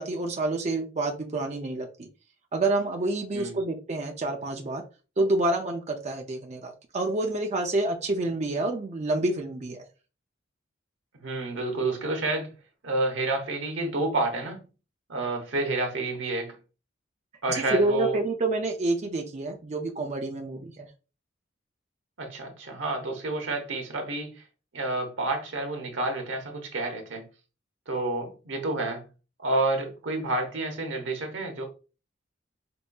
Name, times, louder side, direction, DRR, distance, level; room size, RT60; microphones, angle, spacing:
voice 1, 0.0-2.1 2.5-4.8 5.2-9.8 17.5-20.9, right 2 dB, 35° right, 0.5 m, -28 dB
voice 2, 11.2-12.5 12.8-14.6 15.1-16.6 17.4-18.2 22.2-24.4 24.7-27.2 27.9-29.0 29.4-31.6, right 2 dB, 80° right, 1.0 m, -29 dB
5.2 x 2.6 x 2.3 m
head